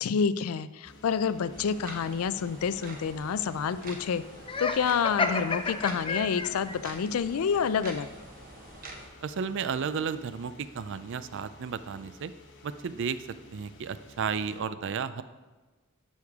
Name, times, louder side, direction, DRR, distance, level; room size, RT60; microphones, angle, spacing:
voice 1, 0.0-4.2 4.6-8.1, left 6 dB, 75° left, 15 dB, 0.4 m, -28 dB
sound 1, 0.8-14.6, left 2 dB, 60° left, 1.0 m, -53 dB
sound 2, 1.5-9.1, right 2 dB, 40° right, 1.2 m, -46 dB
Laughter, 4.4-6.8, left 4 dB, 25° left, 0.5 m, -30 dB
voice 2, 9.2-12.3 12.6-13.2 13.5-15.2, right 6 dB, 60° right, 14 dB, 0.4 m, -33 dB
11.5 x 6.4 x 3.6 m, 1.3 s
head